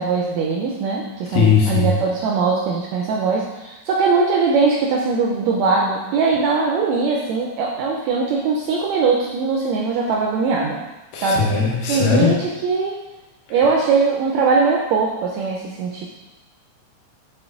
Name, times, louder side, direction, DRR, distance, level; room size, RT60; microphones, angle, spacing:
voice 1, 0.0-10.8 11.2-11.5 11.9-13.0 13.5-16.1, right 4 dB, 80° right, -1 dB, 1.6 m, -20 dB
voice 2, 1.3-1.9 11.1-12.4, left 5 dB, 85° left, -3 dB, 2.8 m, -18 dB
6.9 x 4.0 x 3.7 m, 1.1 s
omnidirectional pair, 3.8 m